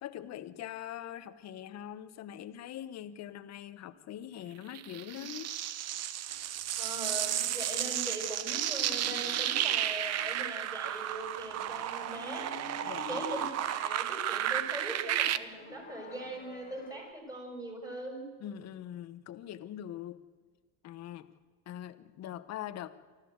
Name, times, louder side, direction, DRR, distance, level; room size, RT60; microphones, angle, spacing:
voice 1, 0.0-5.5 12.8-13.2 18.4-20.2 20.8-21.3 21.7-22.9, left 11 dB, 45° left, 13 dB, 1.2 m, -43 dB
sound 1, 4.8-15.4, right 11 dB, 45° right, 0.9 m, -33 dB
sound 2, 6.3-17.1, left 6 dB, 25° left, 1.9 m, -50 dB
voice 2, 6.8-12.5 12.8-18.2, right 1 dB, 10° right, 2 dB, 6.2 m, -41 dB
24.5 x 14.0 x 8.1 m, 1.5 s
supercardioid pair, 120°, 36 cm